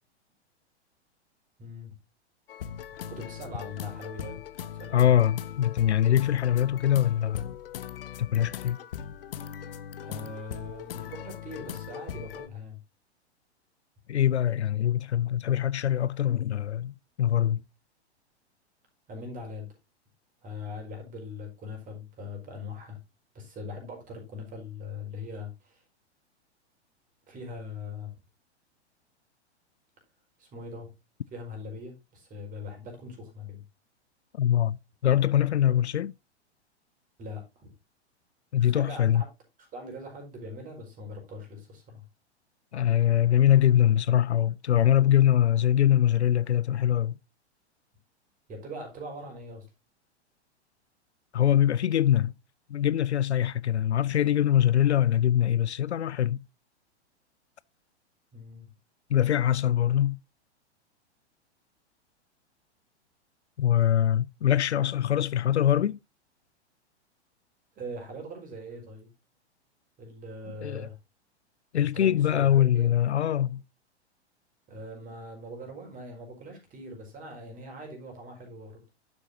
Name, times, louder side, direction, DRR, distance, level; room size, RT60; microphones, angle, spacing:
voice 1, 1.6-1.9 3.1-4.4 4.7-5.1 10.0-12.8 19.1-19.7 20.4-23.0 23.3-25.8 27.3-28.2 30.4-30.9 31.3-33.6 35.6-35.9 37.2-37.7 38.6-39.3 39.7-42.0 48.5-49.6 58.3-58.7 67.7-69.1 70.0-71.0 71.8-72.9 74.7-78.8, left 2 dB, 25° right, 4.8 m, -41 dB
sound 1, 2.5-12.5, left 9 dB, 55° left, 0.9 m, -40 dB
voice 2, 4.9-7.6 8.2-8.8 14.1-17.6 34.3-34.8 35.0-36.1 38.5-39.2 42.7-47.1 51.3-52.3 52.7-56.4 59.1-60.2 63.6-66.0 70.6-70.9 71.7-73.6, left 11 dB, 70° left, 0.5 m, -23 dB
11.5 x 7.4 x 2.6 m
figure-of-eight pair, 105°, 34 cm